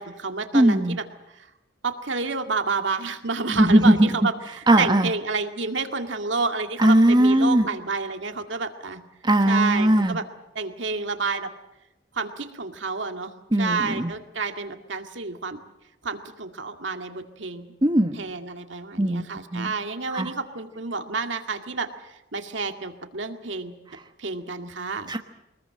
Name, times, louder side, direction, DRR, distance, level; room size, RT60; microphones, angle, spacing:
voice 1, 0.0-1.5 1.8-9.0 9.5-10.3 10.6-11.5 12.1-15.6 16.0-17.7 18.2-23.7 24.2-25.1, right 4 dB, 75° right, 6 dB, 2.1 m, -30 dB
voice 2, 0.5-1.0 3.5-4.2 4.7-5.1 6.8-7.6 9.2-10.2 13.5-14.1 17.8-18.2 19.0-19.2 19.5-19.7 20.1-20.3 25.1-25.2, right 1 dB, 25° right, 5 dB, 1.2 m, -19 dB
23.5 x 21.0 x 7.7 m, 0.93 s
head